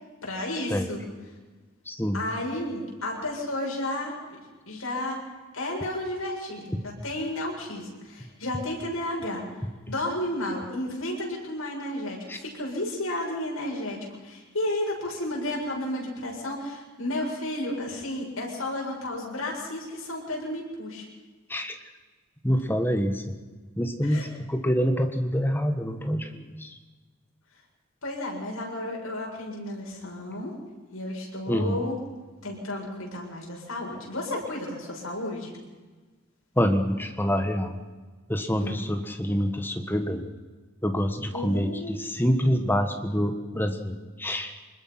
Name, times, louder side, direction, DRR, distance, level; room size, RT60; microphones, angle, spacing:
voice 1, 0.2-1.0 2.1-4.1 4.7-5.2 5.5-9.4 9.9-21.0 24.0-24.3 28.0-30.5 30.9-31.9 32.4-35.6 38.6-38.8 41.3-42.0, left 1 dB, 80° left, -2 dB, 7.4 m, -32 dB
voice 2, 1.8-2.2 6.7-6.8 12.3-12.4 21.5-21.8 22.4-23.4 23.8-26.8 31.5-31.8 36.5-37.8 38.3-40.3 40.8-44.5, equal, 10° left, 7 dB, 1.5 m, -26 dB
25.5 x 21.0 x 5.9 m, 1.4 s
head